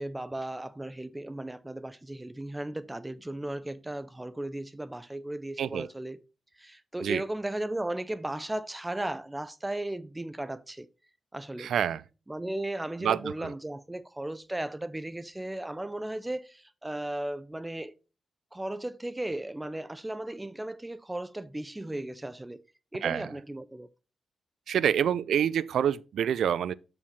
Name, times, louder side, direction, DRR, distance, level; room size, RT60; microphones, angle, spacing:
voice 1, 0.0-6.2 6.6-10.9 11.3-11.7 12.3-17.9 18.5-22.6 22.9-23.9, right 1 dB, 15° right, 0.6 m, -36 dB
voice 2, 5.6-5.9 7.0-7.2 11.6-12.0 13.0-13.5 23.0-23.3 24.7-26.7, right 9 dB, 75° right, 0.3 m, -27 dB
7.1 x 4.9 x 4.2 m
supercardioid pair, 45°, 0 cm